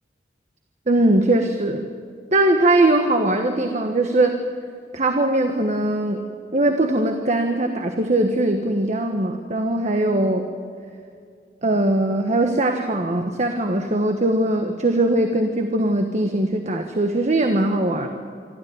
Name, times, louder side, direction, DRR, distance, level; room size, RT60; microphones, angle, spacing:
voice 1, 0.9-1.8 2.3-4.4 4.9-6.2 6.5-10.5 11.6-18.1, right 1 dB, 40° right, 5 dB, 1.4 m, -20 dB
26.5 x 13.0 x 9.4 m, 2.3 s
head